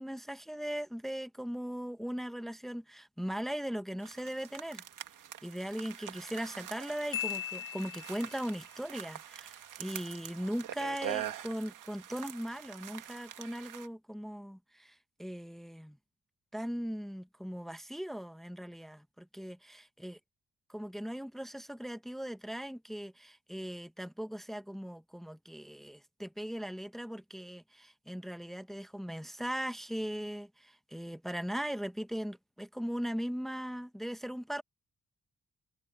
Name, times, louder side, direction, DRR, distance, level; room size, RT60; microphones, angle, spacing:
voice 1, 0.0-4.8 5.4-16.0 16.5-20.2 20.7-34.6, equal, ahead, 0.9 m, -39 dB
sound 1, 4.0-13.9, right 11 dB, 85° right, 1.9 m, -44 dB
Marimba xylophone, 7.1-8.5, left 12 dB, 40° left, 1.4 m, -38 dB
wide cardioid pair, 140°, 31 cm